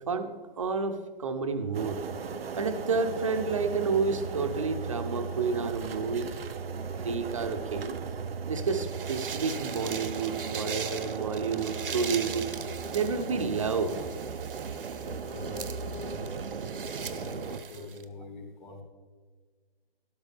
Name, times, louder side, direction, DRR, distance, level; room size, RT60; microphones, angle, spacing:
voice 1, 0.1-2.0 2.6-6.3 7.0-8.0 8.5-12.5 12.9-13.9, right 5 dB, 35° right, 8 dB, 0.8 m, -30 dB
sound 1, 1.7-17.6, right 6 dB, 85° right, 0.8 m, -37 dB
sound 2, 2.0-7.1 7.4-7.8 8.9-14.3 15.2-17.9, left 3 dB, 70° left, 1.5 m, -48 dB
sound 3, 8.6-18.0, right 6 dB, 65° right, 1.0 m, -41 dB
voice 2, 15.0-16.4 17.0-18.8, left 3 dB, 50° left, 0 dB, 2.8 m, -44 dB
13.0 x 12.5 x 3.5 m, 1.5 s
hypercardioid pair, 180°, 29 cm